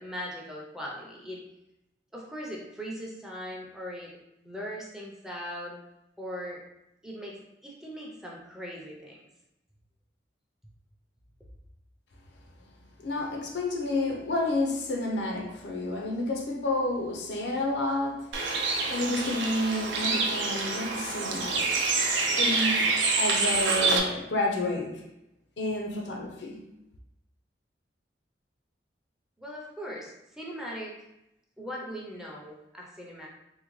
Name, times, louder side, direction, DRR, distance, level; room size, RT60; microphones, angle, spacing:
voice 1, 0.0-1.4 2.1-4.1 4.4-5.8 6.2-6.6 7.0-9.2 29.4-30.9 31.6-33.3, equal, 5° right, 0.5 m, -39 dB
voice 2, 13.0-21.8 22.3-22.9 23.2-25.0 25.6-26.6, left 2 dB, 80° left, 0.6 m, -30 dB
Bird, 18.3-24.0, right 3 dB, 80° right, 0.5 m, -27 dB
3.6 x 2.1 x 3.1 m
head